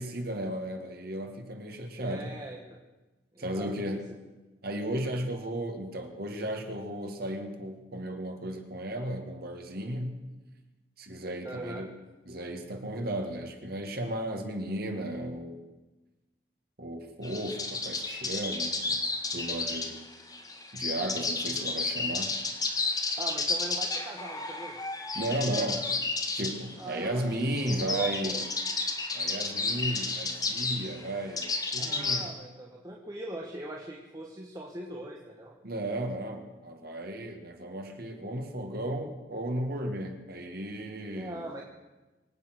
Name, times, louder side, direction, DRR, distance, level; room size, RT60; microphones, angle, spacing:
voice 1, 0.0-2.4 3.4-4.1 4.6-10.2 11.0-11.9 12.3-15.6 16.8-19.0 19.3-20.0 20.7-22.4 25.1-25.9 26.4-28.5 29.1-32.3 35.6-41.5, right 1 dB, 60° right, 4 dB, 2.1 m, -34 dB
voice 2, 2.0-2.8 3.3-4.0 11.4-11.8 23.2-24.8 26.8-28.4 31.8-35.5 41.2-41.6, right 2 dB, 20° right, -1 dB, 1.4 m, -41 dB
sound 1, 17.2-32.3, left 3 dB, 20° left, 1.5 m, -32 dB
24.0 x 8.7 x 6.1 m, 1.1 s
head